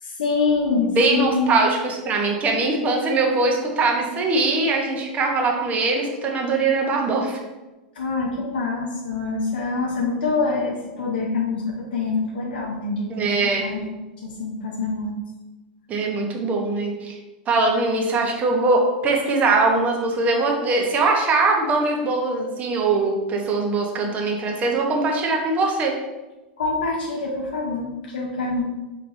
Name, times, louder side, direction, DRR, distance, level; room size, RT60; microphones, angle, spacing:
voice 1, 0.0-1.6 8.0-13.8 14.2-15.1 26.6-28.6, left 4 dB, 85° left, -1 dB, 0.6 m, -25 dB
voice 2, 1.0-7.4 13.1-13.6 15.9-17.2 17.5-25.9, right 3 dB, 30° right, 1 dB, 0.8 m, -21 dB
4.5 x 2.9 x 2.6 m, 1.1 s
hypercardioid pair, 115°, 5 cm